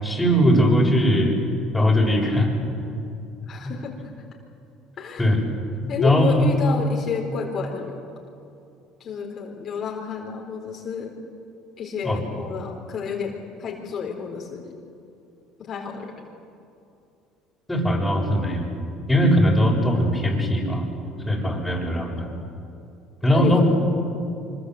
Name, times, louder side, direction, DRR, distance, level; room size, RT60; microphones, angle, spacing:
voice 1, 0.0-1.4 1.7-2.5 5.2-5.4 6.0-6.5 12.0-12.2 17.7-18.7 19.1-20.9 21.3-22.3 23.2-23.6, equal, 10° left, -1 dB, 7.2 m, -20 dB
voice 2, 3.5-3.9 5.0-5.3 5.9-8.0 9.0-11.2 11.8-14.7 15.6-16.2 23.3-23.6, left 6 dB, 50° left, 0 dB, 4.2 m, -30 dB
25.0 x 22.5 x 8.2 m, 2.6 s
supercardioid pair, 85°, 0 cm